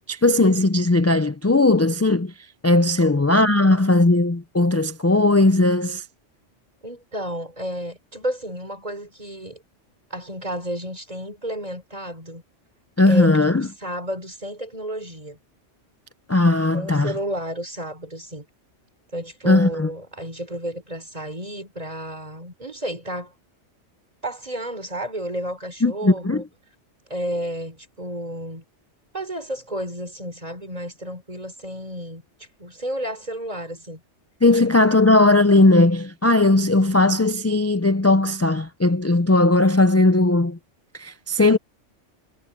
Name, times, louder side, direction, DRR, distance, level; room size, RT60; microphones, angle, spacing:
voice 1, 0.1-2.3 2.6-6.0 13.0-13.7 16.3-17.1 19.4-19.9 25.8-26.4 34.4-40.6 40.9-41.6, left 2 dB, 25° left, 0.3 m, -18 dB
voice 2, 6.8-9.6 10.1-12.4 13.1-15.4 16.7-18.5 19.1-23.3 24.2-26.4 27.1-28.6 29.1-32.2 32.6-34.0 34.4-34.7, equal, 30° right, 4.0 m, -32 dB
omnidirectional pair, 1.2 m